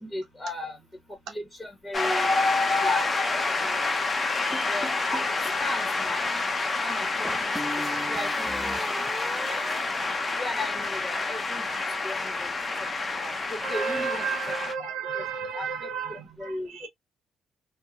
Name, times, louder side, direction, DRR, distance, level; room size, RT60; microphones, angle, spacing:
voice 1, 0.0-0.8 1.3-2.3 2.8-3.1 3.6-3.8 4.7-6.4 6.8-7.5 8.1-8.9 9.4-9.6 10.4-11.7 12.0-12.5 13.0-14.2 14.8-15.2 15.5-16.7, left 2 dB, 15° left, 1.3 m, -36 dB
Shout / Cheering / Applause, 1.9-14.7, left 3 dB, 30° left, 0.7 m, -28 dB
sound 1, 4.5-5.4 7.3-10.9, equal, 5° right, 0.4 m, -37 dB
voice 2, 13.6-16.9, right 6 dB, 85° right, 0.7 m, -32 dB
2.8 x 2.2 x 2.4 m
cardioid pair, 90°, 0 cm